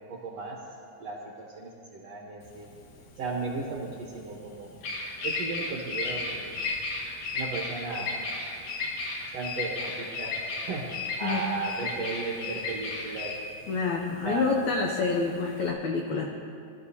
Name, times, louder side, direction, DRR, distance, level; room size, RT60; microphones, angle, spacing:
voice 1, 0.1-0.6 1.0-2.7 3.2-4.7 5.2-6.6 7.3-8.1 9.3-10.8 11.2-13.3 14.2-14.5, right 4 dB, 65° right, -3 dB, 1.7 m, -35 dB
Bird vocalization bird call bird song, 2.4-15.7, left 3 dB, 60° left, 2.4 m, -34 dB
voice 2, 13.7-16.2, left 4 dB, 85° left, 1 dB, 1.6 m, -27 dB
21.5 x 12.5 x 2.8 m, 2.5 s
omnidirectional pair, 4.4 m